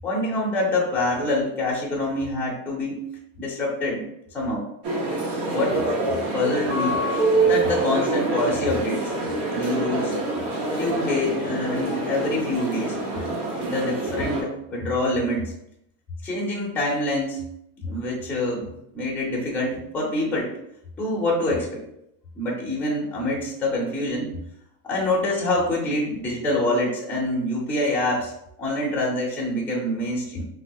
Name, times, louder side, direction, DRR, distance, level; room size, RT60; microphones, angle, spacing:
voice 1, 0.0-3.0 3.4-4.0 4.3-4.7 5.5-5.9 6.3-7.0 7.4-9.1 9.5-10.1 10.7-13.0 13.6-15.4 16.2-17.4 17.8-20.5 21.0-21.8 22.3-24.3 24.8-28.3 28.6-30.5, left 1 dB, 5° left, -4 dB, 0.5 m, -26 dB
sound 1, 4.8-14.4, right 2 dB, 75° right, 1.1 m, -25 dB
3.3 x 2.3 x 2.7 m, 0.77 s
supercardioid pair, 135°, 47 cm